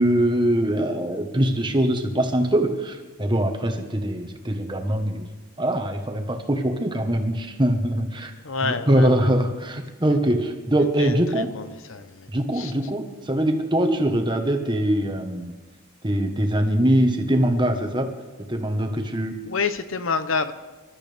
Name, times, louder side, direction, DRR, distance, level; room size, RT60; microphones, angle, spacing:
voice 1, 0.0-5.3 5.6-8.3 8.6-11.5 12.3-15.5 16.0-18.1 18.5-19.3, right 1 dB, 20° right, 4 dB, 1.3 m, -22 dB
voice 2, 8.4-9.2 11.0-12.3 12.5-12.7 19.5-20.5, left 4 dB, 65° left, 11 dB, 0.8 m, -28 dB
26.0 x 13.0 x 3.5 m, 1.2 s
head